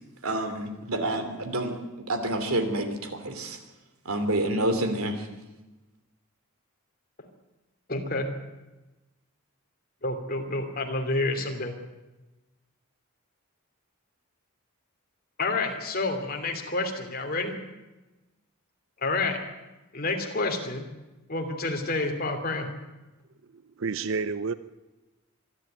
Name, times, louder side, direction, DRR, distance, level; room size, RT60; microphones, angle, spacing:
voice 1, 0.2-3.6 4.0-5.3, right 1 dB, 80° right, 8 dB, 3.0 m, -28 dB
voice 2, 7.9-8.2 10.0-11.7 15.4-17.5 19.0-19.4 19.9-20.9 21.3-22.7, left 2 dB, 45° left, 4 dB, 3.0 m, -29 dB
voice 3, 23.5-24.5, right 4 dB, 65° right, 14 dB, 0.6 m, -30 dB
25.5 x 12.0 x 9.0 m, 1.1 s
head